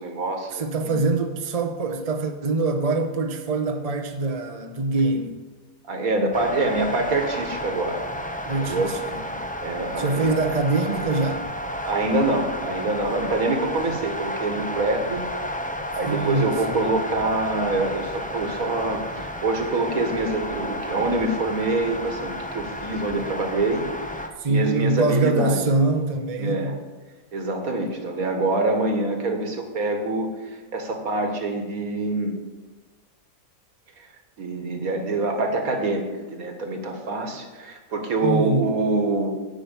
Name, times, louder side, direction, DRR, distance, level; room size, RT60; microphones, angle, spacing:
voice 1, 0.0-0.9 5.9-8.0 8.6-8.9 9.6-10.4 11.8-15.2 15.9-24.1 24.5-25.6 26.4-26.7 27.3-32.3 34.0-34.1 34.4-39.3, right 2 dB, 70° right, 1.9 m, -25 dB
voice 2, 0.5-5.4 8.5-9.4 10.0-11.5 16.1-16.8 24.4-26.8 38.2-38.7, right 3 dB, 30° right, 0.8 m, -24 dB
sound 1, 6.3-24.3, equal, 10° left, 0.4 m, -32 dB
10.0 x 6.3 x 8.3 m
omnidirectional pair, 1.6 m